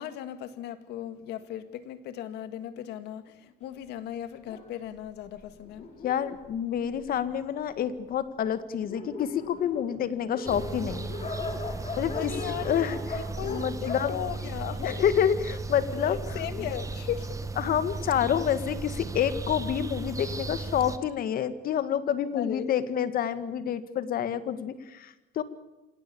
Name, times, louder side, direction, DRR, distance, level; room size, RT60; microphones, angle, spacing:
voice 1, 0.0-5.9 12.1-12.8 13.1-15.0 15.9-17.4 22.3-22.8, left 11 dB, 85° left, 11 dB, 2.0 m, -37 dB
Dog, 4.4-7.4 8.1-8.2 8.5-8.6 8.8-15.2, left 3 dB, 40° left, 4.8 m, -40 dB
voice 2, 6.0-11.1 12.0-12.3 12.6-13.0 13.4-14.1 14.8-16.2 16.6-16.7 17.6-25.4, left 9 dB, 60° left, 12 dB, 1.9 m, -28 dB
sound 1, 10.5-21.0, right 3 dB, 20° right, 1.7 m, -36 dB
26.5 x 17.5 x 7.0 m, 1.1 s
cardioid pair, 110°, 17 cm